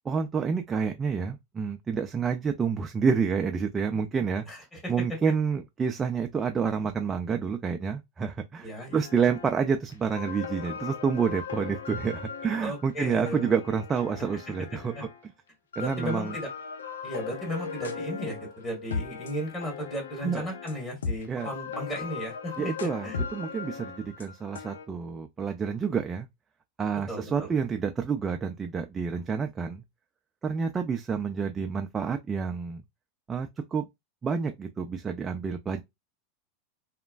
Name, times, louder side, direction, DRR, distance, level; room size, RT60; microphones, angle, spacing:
voice 1, 0.0-4.4 4.9-15.0 15.8-16.3 20.2-20.5 21.3-21.5 22.6-26.3 26.8-29.8 30.4-32.8 33.3-33.8 34.2-35.8, right 6 dB, 20° right, 0.3 m, -29 dB
voice 2, 4.5-5.2 8.6-9.0 12.6-13.5 15.0-15.1 15.8-16.5 17.0-22.7 23.0-23.2 27.1-27.5, equal, 20° left, 1.6 m, -35 dB
sound 1, 8.9-9.6 9.9-15.2 15.7-24.9, left 5 dB, 85° left, 0.5 m, -38 dB
3.0 x 2.1 x 2.4 m
hypercardioid pair, 100°, 0 cm